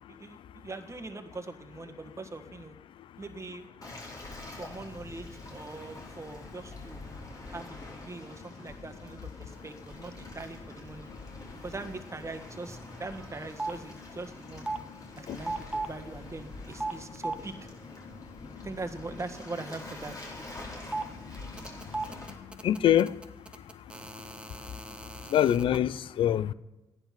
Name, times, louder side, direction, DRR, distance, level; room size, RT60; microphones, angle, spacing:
voice 1, 0.2-2.8 3.2-3.7 4.5-7.0 7.5-7.7 8.0-11.1 11.6-14.7 15.2-17.7 18.6-20.1, right 3 dB, 35° right, 1.6 m, -41 dB
Waves surf, 3.8-22.3, left 2 dB, 40° left, 4.4 m, -45 dB
sound 1, 12.5-13.0 13.3-13.8 14.6-14.8 15.4-15.9 16.7-17.4 20.8-21.1 21.3-25.8, right 3 dB, 10° right, 1.2 m, -36 dB
voice 2, 22.4-23.1 25.3-26.5, left 11 dB, 75° left, 0.4 m, -25 dB
13.5 x 10.5 x 6.0 m
supercardioid pair, 50°, 9 cm